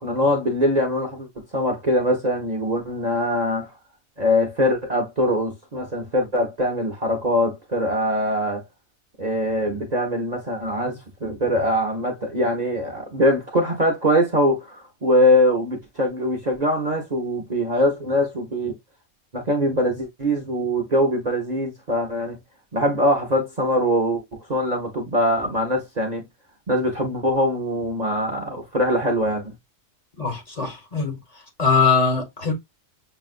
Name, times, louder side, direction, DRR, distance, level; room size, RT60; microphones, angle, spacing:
voice 1, 0.0-3.7 4.2-8.6 9.2-18.8 19.3-22.4 22.7-26.2 26.7-29.5, equal, 35° right, 0.8 m, -22 dB
voice 2, 30.2-31.2 31.6-32.5, left 5 dB, 30° left, 1.3 m, -21 dB
6.9 x 2.4 x 2.4 m
omnidirectional pair, 1.5 m